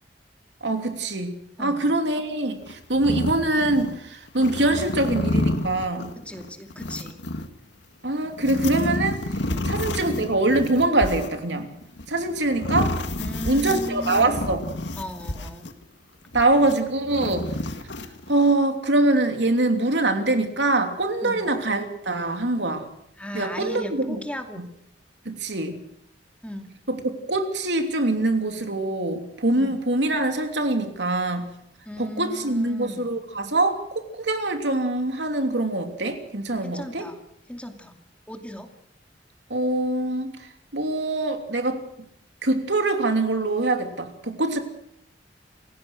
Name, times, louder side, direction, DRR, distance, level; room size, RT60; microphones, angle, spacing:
voice 1, 0.6-6.2 8.0-9.2 9.7-11.7 12.1-13.0 13.4-14.7 16.3-17.5 18.3-22.9 23.3-24.2 24.6-24.7 25.2-25.8 26.9-31.5 32.0-37.1 39.5-41.8 42.4-44.6, right 2 dB, 80° right, 5 dB, 3.0 m, -24 dB
voice 2, 1.6-1.9 6.2-7.2 9.5-9.8 13.2-15.7 21.2-21.4 23.2-24.6 26.4-26.7 29.6-29.8 31.9-33.1 36.6-37.2 37.5-38.0 38.3-38.7, equal, 5° left, 4 dB, 2.5 m, -36 dB
sound 1, 2.6-4.0 4.3-7.5 8.2-15.8 16.3-18.3, left 1 dB, 80° left, 1.9 m, -29 dB
28.5 x 16.5 x 6.4 m, 0.72 s
head